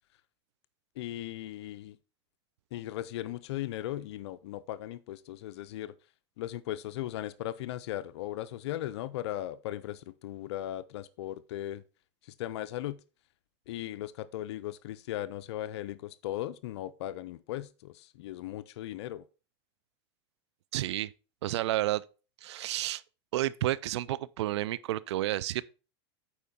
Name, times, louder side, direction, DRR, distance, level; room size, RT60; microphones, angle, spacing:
voice 1, 1.0-2.0 2.7-5.9 6.4-11.8 12.4-13.0 13.7-19.2, left 13 dB, 75° left, 0.5 m, -37 dB
voice 2, 20.7-21.1 21.4-22.0 22.4-23.0 23.3-25.6, right 15 dB, 80° right, 0.5 m, -31 dB
8.6 x 4.7 x 4.2 m
supercardioid pair, 120°, 14 cm